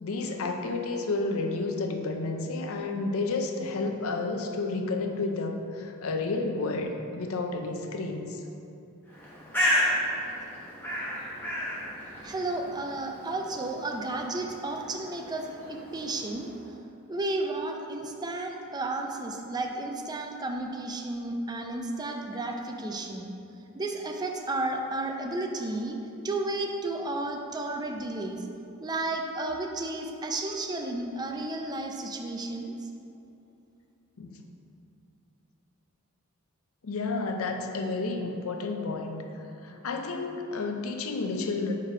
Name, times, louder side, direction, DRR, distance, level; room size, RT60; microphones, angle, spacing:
voice 1, 0.0-8.4 34.2-34.4 36.8-39.2 39.6-41.7, left 3 dB, 70° left, 4 dB, 0.5 m, -31 dB
Bird, 9.1-16.7, equal, 10° left, 1.1 m, -33 dB
voice 2, 12.2-16.5 17.1-23.3 23.7-28.5 28.8-32.9, right 2 dB, 20° right, 2 dB, 0.4 m, -33 dB
4.8 x 4.6 x 4.8 m, 2.8 s
head